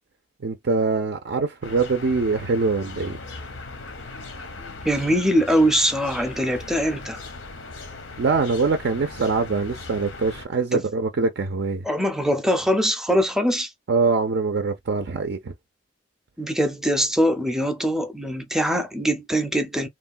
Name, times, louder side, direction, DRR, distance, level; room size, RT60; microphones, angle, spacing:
voice 1, 0.4-3.2 8.2-11.8 13.9-15.5, right 4 dB, 60° right, 0.5 m, -23 dB
sound 1, 1.6-10.5, left 3 dB, 85° left, 0.9 m, -38 dB
voice 2, 4.6-7.2 10.7-10.9 11.8-13.7 16.4-19.9, equal, 5° right, 0.5 m, -22 dB
3.1 x 2.2 x 2.3 m
head